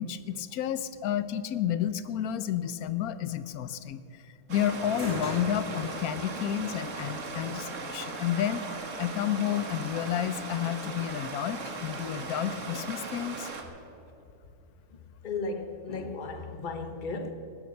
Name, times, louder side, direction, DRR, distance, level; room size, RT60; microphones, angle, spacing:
voice 1, 0.0-4.0 4.5-8.6 9.0-13.5 16.6-16.7, left 10 dB, 70° left, 1.1 m, -31 dB
Stream, 4.5-13.6, right 4 dB, 50° right, 1.7 m, -38 dB
sound 1, 4.6-13.8, left 1 dB, 10° left, 4.3 m, -45 dB
voice 2, 15.2-17.3, left 3 dB, 35° left, 1.1 m, -35 dB
18.5 x 11.5 x 6.5 m
omnidirectional pair, 1.7 m